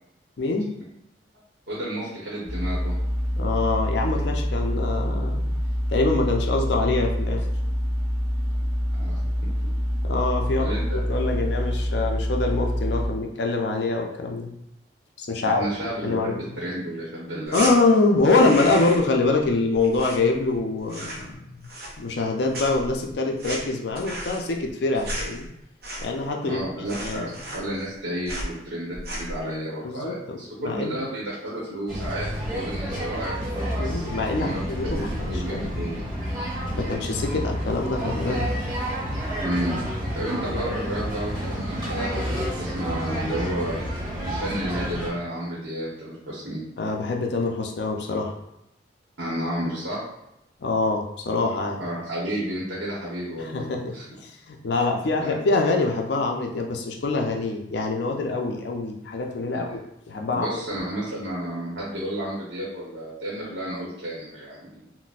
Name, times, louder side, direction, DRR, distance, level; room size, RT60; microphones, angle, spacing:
voice 1, 0.4-0.7 3.4-5.4 5.9-7.5 10.0-14.5 15.2-15.7 16.0-16.5 17.5-21.5 22.0-25.5 26.0-26.6 27.0-27.3 29.8-30.2 30.6-31.0 33.8-35.9 36.8-38.4 46.8-48.3 50.6-51.8 53.4-59.8 60.1-60.5, left 3 dB, 70° left, 1 dB, 0.4 m, -25 dB
voice 2, 1.7-2.9 9.0-9.5 10.6-11.0 15.4-17.7 26.4-33.4 34.4-34.6 34.9-35.9 39.4-39.8 40.1-43.8 44.2-46.6 49.2-50.0 51.8-53.7 53.9-54.0 55.2-55.4 59.5-59.8 60.3-64.8, right 1 dB, 85° right, -6 dB, 0.9 m, -31 dB
sound 1, 2.4-13.1, equal, 5° right, 0.9 m, -26 dB
sound 2, 17.5-17.7 18.2-19.1 19.4-20.6 20.8-21.3 21.6-22.3 22.5-26.3 26.6-26.7 26.9-28.0 28.3-28.5 28.9-29.4, right 1 dB, 55° right, 0.6 m, -34 dB
sound 3, 31.9-45.1, equal, 25° right, 1.3 m, -30 dB
3.9 x 2.1 x 2.4 m, 0.83 s
head